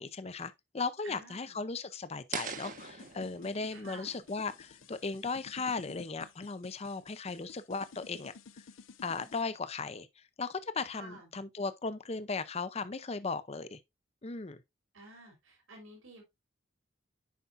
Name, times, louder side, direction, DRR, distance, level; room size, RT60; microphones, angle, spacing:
voice 1, 0.0-8.3 9.0-10.1 10.4-13.8 14.2-14.6, left 4 dB, 30° left, 0.6 m, -37 dB
voice 2, 1.0-1.6 3.7-4.2 10.9-11.3 14.9-16.2, right 2 dB, 80° right, 3.3 m, -51 dB
sound 1, 2.3-5.4, right 6 dB, 40° right, 0.9 m, -43 dB
sound 2, 2.6-9.4, left 4 dB, 75° left, 0.6 m, -53 dB
9.3 x 5.8 x 2.5 m
head